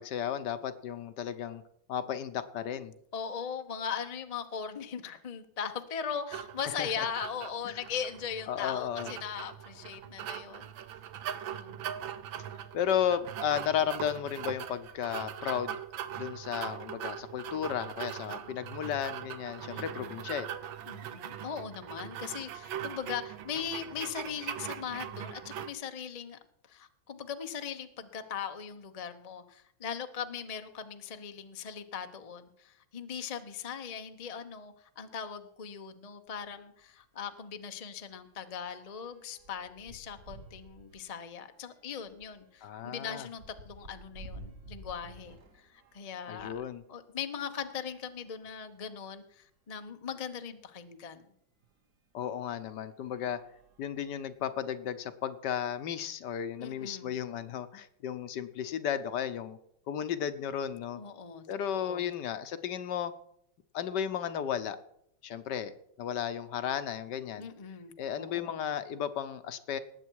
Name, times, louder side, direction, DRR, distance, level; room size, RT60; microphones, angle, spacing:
voice 1, 0.0-1.6 1.9-2.9 6.8-7.1 7.7-7.8 8.5-9.1 12.7-15.8 16.2-20.5 42.6-43.3 46.3-46.8 52.1-53.4 53.8-59.6 59.9-61.0 61.5-63.1 63.7-64.8 65.2-65.7 66.0-67.5 68.0-69.8, left 9 dB, 65° left, 12 dB, 1.3 m, -34 dB
voice 2, 3.1-10.7 11.5-11.9 18.3-18.6 19.6-20.2 20.9-26.4 26.7-46.6 46.9-51.2 56.6-57.1 60.9-61.4 61.7-62.1 67.4-68.6, left 7 dB, 45° left, 8 dB, 0.5 m, -39 dB
sound 1, 6.3-25.7, right 10 dB, 80° right, 1.6 m, -41 dB
sound 2, 36.3-36.5 36.8-37.0 37.3-46.7 47.5-48.8 49.5-49.6 49.8-49.9 51.6-51.7 52.4-52.7 53.0-54.3, right 1 dB, 45° right, 1.4 m, -53 dB
19.0 x 7.9 x 4.7 m, 0.71 s
omnidirectional pair, 2.2 m